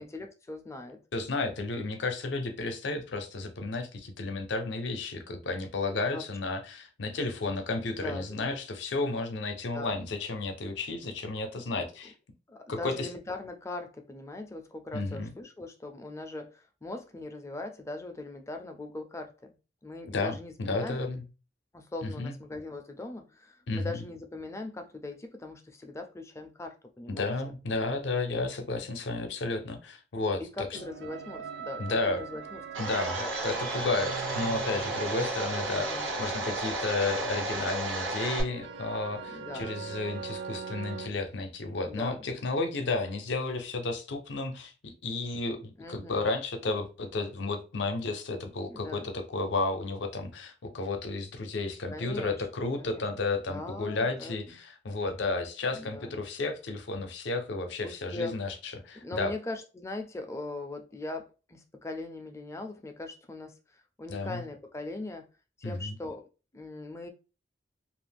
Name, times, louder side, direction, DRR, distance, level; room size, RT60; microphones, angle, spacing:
voice 1, 0.0-1.0 6.1-6.3 8.0-8.5 9.7-10.0 11.5-11.6 12.5-19.5 19.8-21.0 21.7-27.3 30.4-32.6 32.9-33.6 35.7-36.1 39.3-39.8 41.9-42.2 45.8-46.3 48.7-49.1 51.9-52.4 52.7-53.0 53.5-54.6 55.7-56.2 57.8-58.4 59.0-65.2 65.6-66.3 66.5-67.1, left 2 dB, 15° left, 0.4 m, -40 dB
voice 2, 1.1-12.1 12.7-13.1 14.9-15.3 20.1-21.2 22.0-22.3 23.7-23.9 27.1-30.8 31.8-32.2 32.8-59.3 64.1-64.4 65.6-66.0, left 3 dB, 70° left, 0.5 m, -32 dB
sound 1, 30.7-41.1, right 6 dB, 65° right, 0.4 m, -41 dB
Domestic sounds home sounds, 32.7-38.4, right 2 dB, 85° right, 0.8 m, -33 dB
2.4 x 2.0 x 3.3 m
head